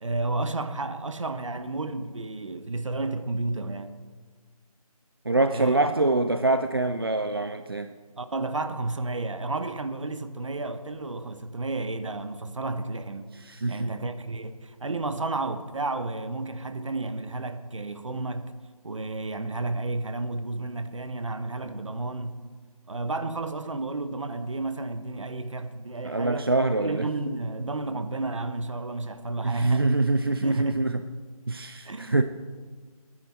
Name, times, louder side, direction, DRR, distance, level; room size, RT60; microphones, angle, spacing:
voice 1, 0.0-4.0 5.5-5.9 8.2-13.3 13.7-18.5 18.8-22.4 22.9-26.5 26.8-29.9 30.3-30.8 31.8-32.2, right 2 dB, 55° right, 1.0 m, -32 dB
voice 2, 5.3-7.9 13.3-13.9 26.0-27.1 29.4-31.0 31.5-32.2, right 2 dB, 40° right, 0.4 m, -25 dB
15.5 x 10.0 x 4.4 m
figure-of-eight pair, 165°, 19 cm